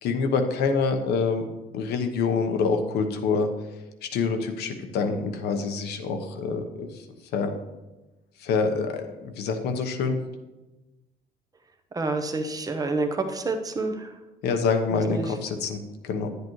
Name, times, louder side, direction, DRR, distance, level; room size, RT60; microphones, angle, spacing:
voice 1, 0.0-1.4 1.7-3.5 4.0-7.1 7.3-7.5 8.4-10.2 14.4-16.3, left 4 dB, 80° left, 6 dB, 1.0 m, -26 dB
voice 2, 11.9-14.1 14.9-15.2, right 3 dB, 20° right, 6 dB, 0.9 m, -28 dB
10.5 x 8.1 x 3.1 m, 1.1 s
cardioid pair, 110°, 17 cm